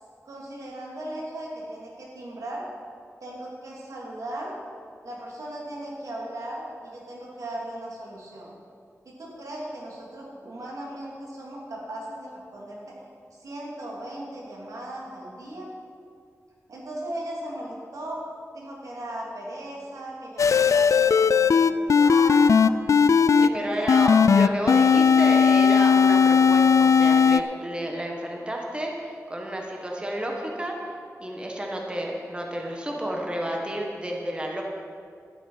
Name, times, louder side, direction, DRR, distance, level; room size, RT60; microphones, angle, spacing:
voice 1, 0.2-2.7 3.2-4.5 5.0-8.5 9.0-12.8 13.3-15.7 16.7-18.2 18.5-22.7 23.2-24.1 29.7-29.8, right 1 dB, 85° right, -3 dB, 2.9 m, -37 dB
sound 1, 20.4-23.5 23.9-27.4, left 6 dB, 70° left, 0.3 m, -17 dB
voice 2, 23.4-30.8 31.2-34.6, right 1 dB, 20° right, 0 dB, 1.5 m, -31 dB
12.5 x 10.0 x 5.6 m, 2.3 s
wide cardioid pair, 115°, 6 cm